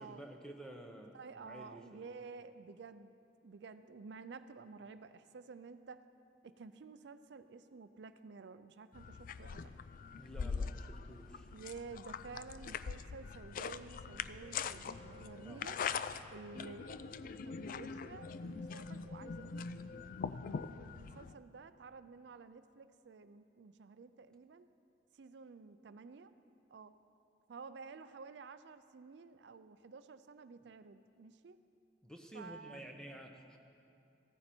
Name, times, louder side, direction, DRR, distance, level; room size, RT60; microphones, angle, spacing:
voice 1, 0.0-1.1 1.4-2.1 10.1-11.5 15.4-15.6 32.0-33.6, right 1 dB, 5° left, 2 dB, 1.0 m, -51 dB
voice 2, 1.1-3.1 3.4-6.0 6.4-9.7 11.5-15.8 16.3-20.1 20.4-24.7 25.1-26.3 26.7-27.0 27.5-31.6 32.3-32.8, right 4 dB, 65° right, 12 dB, 0.4 m, -52 dB
sound 1, 8.9-21.3, left 6 dB, 50° left, 0.3 m, -43 dB
15.0 x 13.5 x 4.4 m, 2.6 s
head